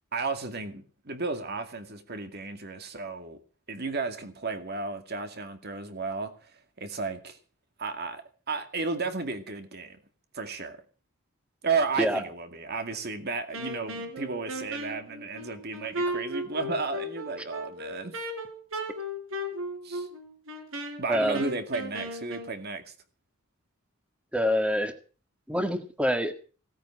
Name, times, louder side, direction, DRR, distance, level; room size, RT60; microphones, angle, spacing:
voice 1, 0.1-3.4 3.7-7.4 7.8-10.0 10.3-10.8 11.6-18.2 19.8-20.1 21.0-22.9, right 4 dB, 50° right, 2.2 m, -33 dB
Wind instrument woodwind instrument, 13.5-22.5, equal, 70° right, 4.0 m, -36 dB
voice 2, 21.1-21.4 24.3-24.9 25.5-26.3, equal, 5° right, 1.7 m, -26 dB
17.0 x 9.0 x 7.4 m
head